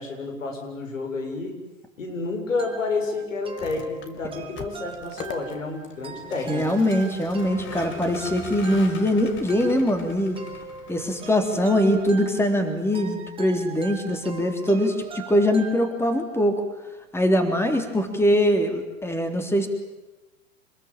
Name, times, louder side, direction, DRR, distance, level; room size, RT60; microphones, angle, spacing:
voice 1, 0.0-1.6 2.0-6.7, left 3 dB, 85° left, 3 dB, 7.5 m, -30 dB
sound 1, 2.6-16.4, right 5 dB, 15° right, 4.3 m, -42 dB
Vehicle, 3.4-12.8, left 5 dB, 30° left, 3.0 m, -42 dB
voice 2, 6.5-10.4 10.9-16.6 17.1-19.7, equal, 5° left, 6 dB, 3.6 m, -22 dB
27.5 x 21.0 x 9.0 m, 1.1 s
hypercardioid pair, 105°, 38 cm